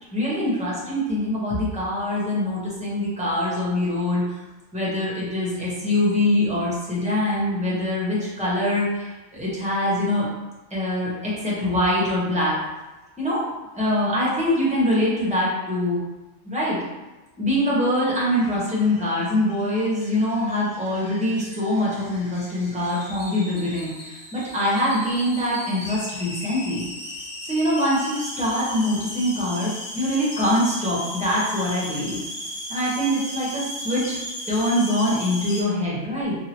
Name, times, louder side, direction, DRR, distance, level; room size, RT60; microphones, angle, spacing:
voice 1, 0.1-4.4 4.7-10.3 10.7-12.6 13.2-13.4 13.7-16.0 16.4-16.8 17.4-26.9 27.4-32.2 32.7-34.2 34.5-36.4, left 1 dB, 5° right, -7 dB, 0.7 m, -24 dB
sound 1, 18.3-35.6, left 1 dB, 45° left, 0.3 m, -36 dB
2.8 x 2.7 x 2.9 m, 1.1 s
omnidirectional pair, 1.4 m